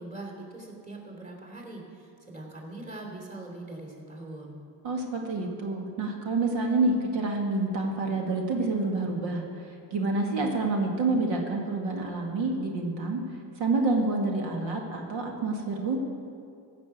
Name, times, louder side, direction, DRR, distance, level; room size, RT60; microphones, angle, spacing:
voice 1, 0.0-4.6, right 2 dB, 15° right, 0 dB, 3.1 m, -42 dB
voice 2, 4.8-9.4 9.9-13.2 13.6-16.0, right 3 dB, 70° right, 1 dB, 2.1 m, -28 dB
15.5 x 6.2 x 8.1 m, 2.5 s
cardioid pair, 110°, 47 cm